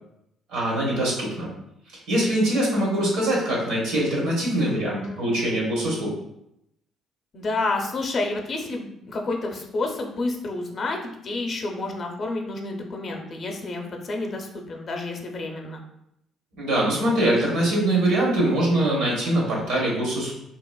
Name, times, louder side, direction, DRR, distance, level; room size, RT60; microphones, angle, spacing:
voice 1, 0.5-1.5 1.9-6.1 16.6-20.3, right 1 dB, 85° right, -3 dB, 1.1 m, -23 dB
voice 2, 4.7-5.5 7.3-15.8, left 2 dB, 50° left, 2 dB, 0.5 m, -30 dB
2.8 x 2.5 x 2.2 m, 0.79 s
supercardioid pair, 65°, 0 cm